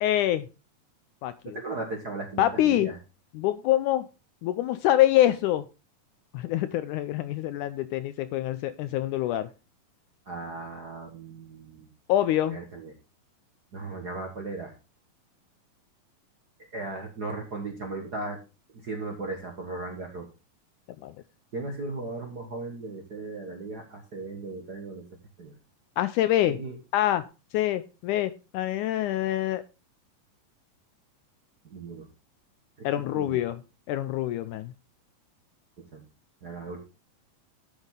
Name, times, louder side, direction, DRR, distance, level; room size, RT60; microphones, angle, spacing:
voice 1, 0.0-0.5 1.2-1.6 2.4-2.9 3.3-4.1 4.4-5.6 6.3-9.5 12.1-12.6 21.0-21.1 26.0-26.6 26.9-27.2 27.5-29.6 32.8-33.6 33.9-34.7, left 13 dB, 80° left, 1.9 m, -25 dB
voice 2, 1.5-3.0 10.2-11.9 12.5-12.9 13.7-14.7 16.7-18.4 18.7-20.3 21.5-25.0 25.4-25.5 26.4-26.8 31.6-32.0 32.8-32.9 33.1-33.5 35.9-36.0 36.4-36.8, right 3 dB, 45° right, 1.3 m, -37 dB
12.0 x 7.3 x 3.8 m
omnidirectional pair, 4.0 m